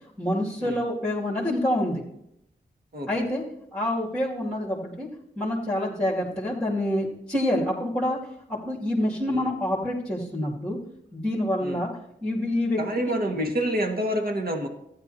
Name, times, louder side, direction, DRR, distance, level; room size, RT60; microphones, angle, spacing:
voice 1, 0.2-2.0 3.1-3.4 3.7-5.1 5.4-8.2 8.5-10.8 11.1-11.9 12.2-12.8, left 1 dB, 5° left, -6 dB, 2.4 m, -27 dB
voice 2, 12.8-14.7, equal, 55° right, 3 dB, 1.8 m, -27 dB
14.0 x 10.0 x 2.8 m, 0.80 s
cardioid pair, 55°, 19 cm